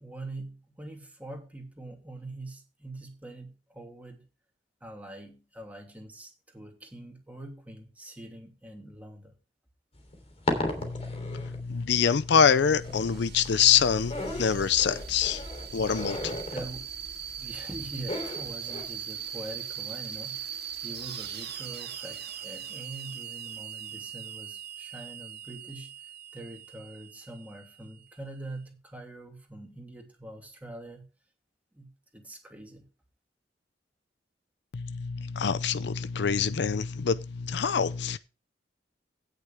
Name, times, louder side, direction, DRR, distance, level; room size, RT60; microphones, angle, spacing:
voice 1, 0.0-4.2 4.8-9.3 16.5-16.9 17.4-25.9 26.3-31.1 31.7-32.8, right 1 dB, 10° right, 2.9 m, -44 dB
sound 1, 9.9-18.8, left 1 dB, 35° left, 3.2 m, -36 dB
voice 2, 10.8-15.4 15.7-16.4 34.7-38.2, left 7 dB, 65° left, 0.5 m, -25 dB
sound 2, 12.2-28.5, right 7 dB, 60° right, 2.0 m, -40 dB
17.0 x 6.7 x 3.4 m
head